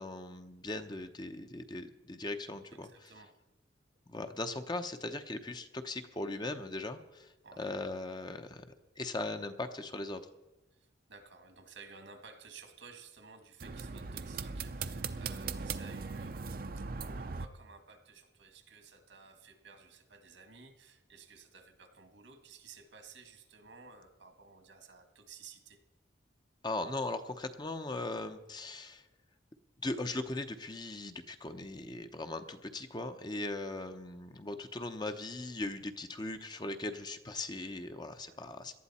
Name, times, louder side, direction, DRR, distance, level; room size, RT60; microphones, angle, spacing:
voice 1, 0.0-3.1 4.1-8.6 9.0-10.2 26.6-29.0 29.8-38.7, left 2 dB, 25° left, 8 dB, 0.7 m, -39 dB
voice 2, 2.7-3.4 7.4-7.7 10.7-16.5 17.0-25.8 38.2-38.4, right 5 dB, 80° right, 6 dB, 1.9 m, -55 dB
sound 1, 13.6-17.5, right 4 dB, 50° right, 0.6 m, -39 dB
18.0 x 12.0 x 4.2 m, 1.1 s
head